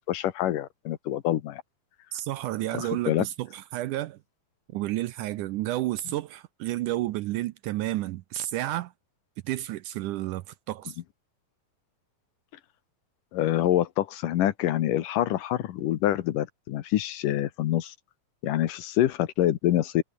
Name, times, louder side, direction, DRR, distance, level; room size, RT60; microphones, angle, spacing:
voice 1, 0.1-1.6 2.7-3.2 13.3-17.9 18.4-20.0, left 13 dB, 70° left, 2.6 m, -26 dB
voice 2, 2.1-4.2 4.7-8.9 9.4-11.0, right 15 dB, 75° right, 2.0 m, -31 dB
omnidirectional pair, 4.1 m